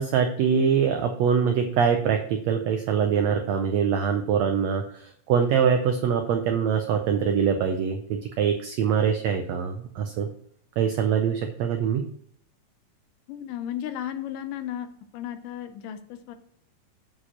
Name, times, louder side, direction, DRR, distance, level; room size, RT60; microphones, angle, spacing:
voice 1, 0.0-10.3 10.8-12.1, right 7 dB, 80° right, 5 dB, 1.5 m, -24 dB
voice 2, 13.3-14.9 15.1-16.4, left 10 dB, 80° left, 9 dB, 2.3 m, -34 dB
8.5 x 4.9 x 5.8 m, 0.64 s
omnidirectional pair, 3.9 m